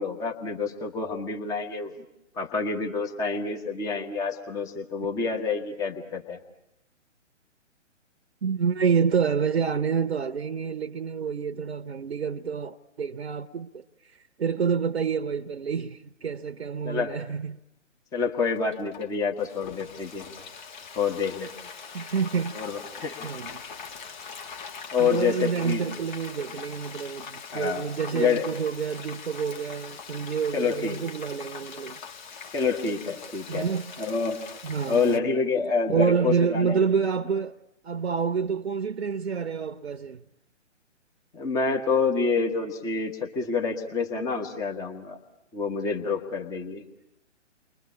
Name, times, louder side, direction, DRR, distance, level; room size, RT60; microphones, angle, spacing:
voice 1, 0.0-1.9 2.3-6.4 16.8-17.2 18.1-20.3 20.9-21.5 22.5-23.3 24.9-25.9 27.5-27.9 28.1-28.5 30.5-31.0 32.5-33.7 34.0-34.4 34.9-36.8 41.3-45.2 45.5-46.8, left 5 dB, 10° left, 1.3 m, -27 dB
voice 2, 8.4-13.7 14.4-17.6 21.9-22.6 23.2-23.6 25.0-32.0 33.5-33.9 34.6-35.2 35.9-37.5 37.8-40.2, right 6 dB, 55° right, 0.9 m, -28 dB
Frying (food), 18.5-35.2, left 6 dB, 40° left, 1.8 m, -42 dB
30.0 x 22.5 x 8.5 m
figure-of-eight pair, 135°, 37 cm